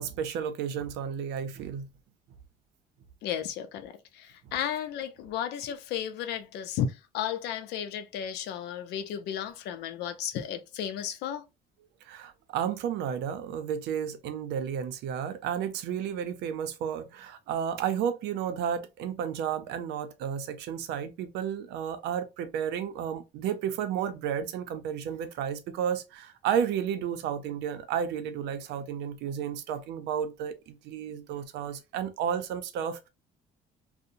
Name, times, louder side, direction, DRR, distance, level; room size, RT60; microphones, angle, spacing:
voice 1, 0.0-1.9 12.1-33.1, right 8 dB, 85° right, 0.5 m, -32 dB
voice 2, 3.2-11.4, left 9 dB, 80° left, 0.5 m, -34 dB
2.7 x 2.1 x 2.5 m
cardioid pair, 110°, 17 cm